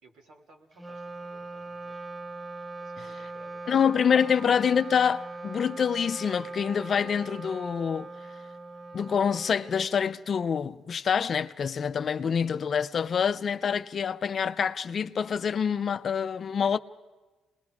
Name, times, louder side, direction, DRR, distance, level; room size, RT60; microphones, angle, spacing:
voice 1, 0.0-2.2 2.8-4.4, right 2 dB, 80° right, 3.1 m, -57 dB
Wind instrument woodwind instrument, 0.7-10.3, right 3 dB, 10° right, 0.7 m, -41 dB
voice 2, 3.7-8.1 8.9-16.8, left 7 dB, 50° left, 0.6 m, -26 dB
28.0 x 20.5 x 4.9 m
cardioid pair, 90°, 0 cm